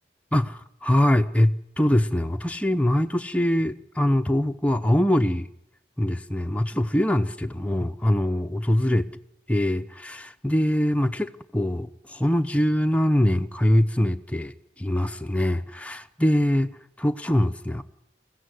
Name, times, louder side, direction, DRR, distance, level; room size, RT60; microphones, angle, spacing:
voice 1, 0.3-5.5 6.0-9.1 9.5-16.7 17.0-17.8, left 1 dB, 5° left, 0.8 m, -23 dB
23.0 x 16.0 x 9.6 m
head